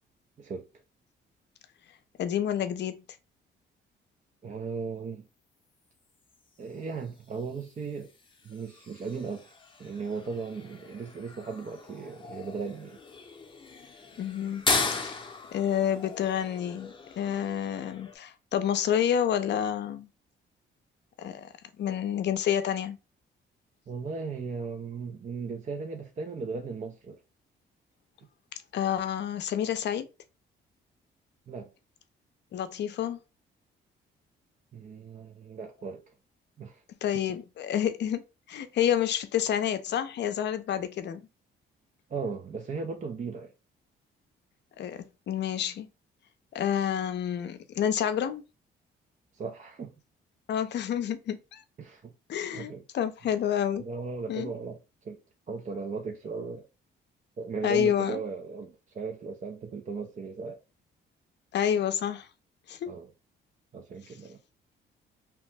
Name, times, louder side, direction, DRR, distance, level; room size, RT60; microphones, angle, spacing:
voice 1, 0.4-0.7 4.4-5.3 6.6-8.1 8.4-9.5 9.8-13.0 23.9-27.2 31.5-31.7 34.7-36.1 36.6-36.8 42.1-43.5 49.3-49.9 51.8-52.1 52.5-52.8 53.8-55.2 55.5-56.7 57.4-60.6 62.9-63.1 63.7-64.4, right 4 dB, 40° right, 0.5 m, -37 dB
voice 2, 2.2-3.0 14.2-14.7 15.0-15.1 15.5-20.1 21.2-21.5 21.8-23.0 28.7-30.1 32.5-33.2 37.0-38.2 38.5-41.2 44.8-45.9 46.5-48.4 50.5-51.6 52.3-53.8 54.3-54.5 57.6-58.2 61.5-62.3 62.7-62.9, left 9 dB, 60° left, 0.5 m, -29 dB
sound 1, 6.2-18.2, left 4 dB, 25° left, 0.7 m, -37 dB
2.9 x 2.1 x 3.2 m
cardioid pair, 90°, 20 cm